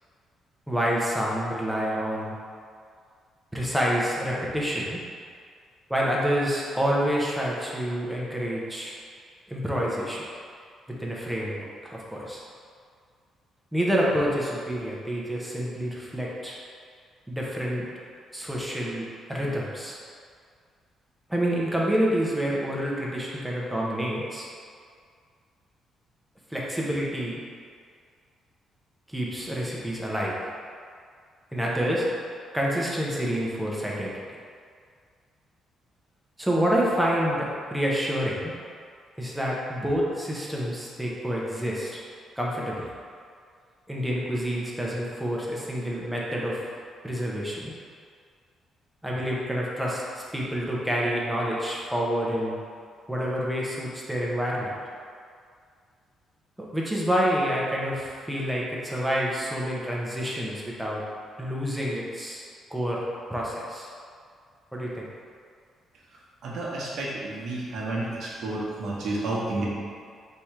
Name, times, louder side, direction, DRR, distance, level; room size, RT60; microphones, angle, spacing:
voice 1, 0.7-2.3 3.5-5.0 5.9-9.0 9.5-10.2 11.0-12.4 13.7-16.6 17.3-17.9 18.3-20.0 21.3-24.5 26.5-27.4 29.1-30.4 31.5-32.1 32.5-34.1 36.4-38.5 39.2-42.0 42.4-42.9 43.9-46.6 47.0-47.7 49.0-52.6 53.1-54.8 56.6-61.0 61.4-63.0 63.3-63.9 64.7-65.1, equal, 5° right, -5 dB, 0.8 m, -28 dB
voice 2, 66.4-69.6, right 2 dB, 70° right, -5 dB, 1.0 m, -31 dB
3.6 x 2.9 x 4.4 m, 2.1 s
cardioid pair, 90°, 0 cm